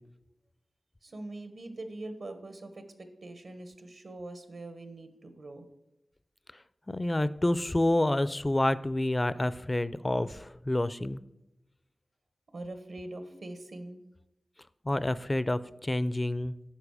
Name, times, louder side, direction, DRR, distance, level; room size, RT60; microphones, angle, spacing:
voice 1, 1.0-5.7 12.5-14.0, right 2 dB, 70° right, 8 dB, 1.2 m, -43 dB
voice 2, 6.9-11.2 14.8-16.5, left 1 dB, 25° left, 16 dB, 0.4 m, -28 dB
10.0 x 6.5 x 4.9 m, 0.90 s
wide cardioid pair, 80°, 0 cm